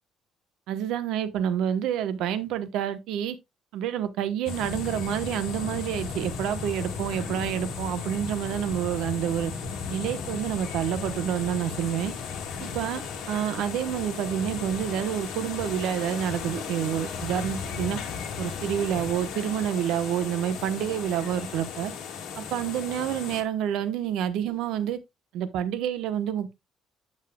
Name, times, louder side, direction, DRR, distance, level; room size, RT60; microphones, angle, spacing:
voice 1, 0.7-3.4 3.7-9.5 9.9-12.1 12.6-18.0 18.4-21.9 22.4-25.0 25.3-26.5, right 10 dB, 80° right, 1.0 m, -28 dB
sound 1, 4.5-23.4, left 6 dB, 80° left, 1.7 m, -35 dB
8.3 x 7.3 x 2.3 m
cardioid pair, 165°, 0 cm